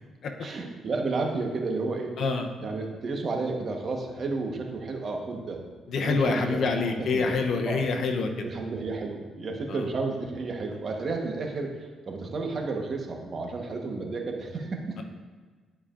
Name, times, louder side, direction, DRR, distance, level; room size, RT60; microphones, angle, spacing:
voice 1, 0.4-2.2 2.6-5.6 6.0-7.4 7.7-7.8 8.4-15.0, right 3 dB, 45° right, 2 dB, 1.1 m, -32 dB
voice 2, 2.2-2.5 5.9-8.5 9.7-9.8, left 4 dB, 65° left, 4 dB, 0.7 m, -26 dB
11.0 x 4.9 x 2.5 m, 1.4 s
cardioid pair, 90°, 0 cm